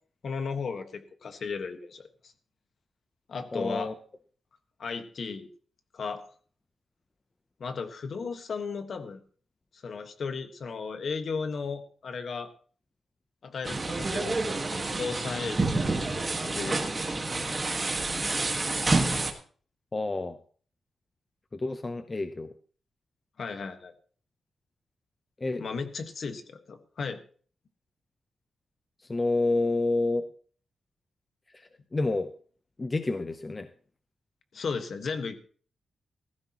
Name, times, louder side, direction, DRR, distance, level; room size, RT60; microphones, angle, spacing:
voice 1, 0.2-2.3 3.3-3.9 4.8-5.5 5.9-6.2 7.6-9.2 9.8-12.5 13.4-15.7 16.1-17.5 23.4-23.9 25.6-27.2 34.5-35.3, left 5 dB, 50° left, 8 dB, 1.4 m, -35 dB
voice 2, 3.5-3.9 19.9-20.4 21.5-22.5 25.4-25.6 29.1-30.3 31.9-32.3 32.8-33.7, left 2 dB, 20° left, 9 dB, 0.6 m, -28 dB
sound 1, 13.7-19.3, right 3 dB, 20° right, 1.6 m, -28 dB
17.0 x 14.5 x 3.0 m, 0.44 s
wide cardioid pair, 160°, 0 cm